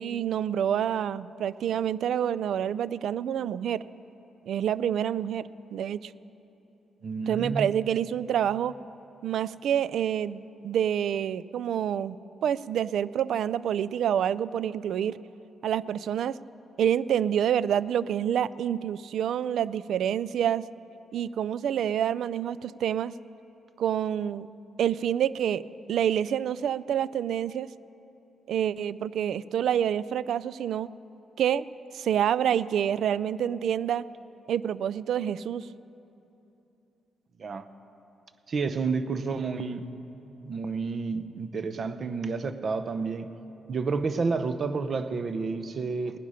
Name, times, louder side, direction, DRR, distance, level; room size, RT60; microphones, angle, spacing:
voice 1, 0.0-3.8 4.5-6.1 7.3-8.7 9.2-15.2 15.6-16.4 16.8-20.7 21.1-23.1 23.8-24.5 24.8-25.6 25.9-27.7 28.5-30.9 31.4-31.7 31.9-34.0 34.5-35.7, right 9 dB, 75° right, 18 dB, 0.3 m, -27 dB
voice 2, 7.0-7.7 37.4-37.7 38.5-39.8 40.4-43.3 43.7-46.2, right 4 dB, 50° right, 10 dB, 0.7 m, -30 dB
19.0 x 10.0 x 5.6 m, 2.9 s
cardioid pair, 95°, 0 cm